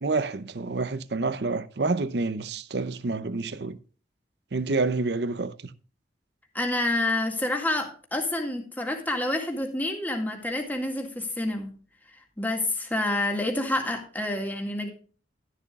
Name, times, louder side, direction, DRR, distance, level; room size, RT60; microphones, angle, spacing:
voice 1, 0.0-3.8 4.5-5.5, right 3 dB, 70° right, 0.7 m, -28 dB
voice 2, 6.5-11.8 12.4-14.9, left 1 dB, 10° left, 1.9 m, -28 dB
12.5 x 11.0 x 2.4 m
head